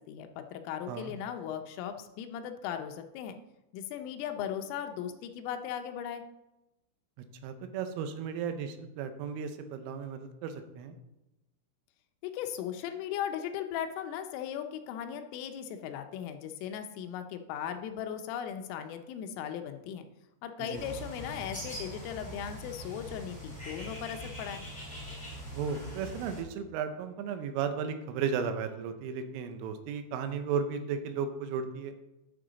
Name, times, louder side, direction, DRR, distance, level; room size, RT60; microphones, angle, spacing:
voice 1, 0.1-3.4 3.7-6.2 12.2-20.1 20.4-24.6, left 9 dB, 80° left, 7 dB, 3.2 m, -38 dB
voice 2, 7.4-11.0 20.6-20.8 25.5-31.9, right 6 dB, 80° right, 8 dB, 3.2 m, -35 dB
Bird, 20.7-26.4, equal, 5° left, 1.3 m, -42 dB
10.0 x 6.9 x 3.9 m, 0.94 s
omnidirectional pair, 5.9 m